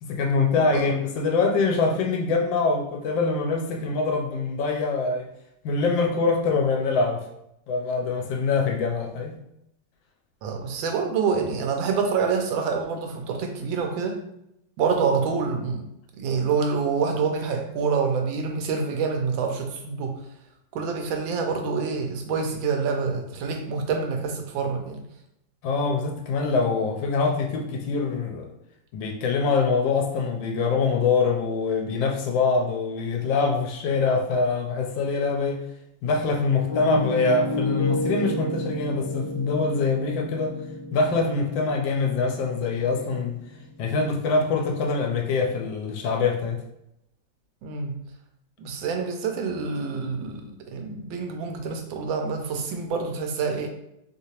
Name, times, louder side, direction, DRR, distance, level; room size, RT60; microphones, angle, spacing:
voice 1, 0.0-5.3 5.6-7.3 7.7-9.4 25.6-28.5 28.9-35.6 36.0-40.5 40.9-43.4 43.8-46.6, left 4 dB, 75° left, 2 dB, 1.3 m, -24 dB
voice 2, 10.4-14.2 14.8-15.9 16.2-20.2 20.7-25.0 47.6-48.0 48.6-53.7, right 5 dB, 80° right, 4 dB, 1.3 m, -27 dB
Piano, 36.7-44.5, left 1 dB, 15° left, 1.0 m, -32 dB
3.3 x 2.7 x 2.9 m, 0.81 s
omnidirectional pair, 2.1 m